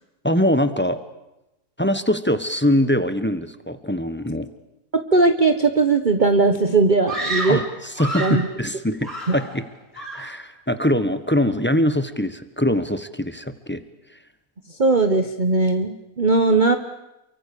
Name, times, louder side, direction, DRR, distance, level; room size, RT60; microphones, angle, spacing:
voice 1, 0.2-1.0 1.8-4.5 7.5-9.7 9.9-13.8, equal, 10° left, 11 dB, 1.2 m, -23 dB
voice 2, 5.1-7.6 8.2-8.5 14.8-16.8, right 3 dB, 35° right, 6 dB, 1.2 m, -18 dB
Screaming, 7.1-8.5 9.0-9.7 10.0-10.4, right 1 dB, 65° right, 6.7 m, -29 dB
29.0 x 24.0 x 7.0 m, 0.93 s
omnidirectional pair, 1.6 m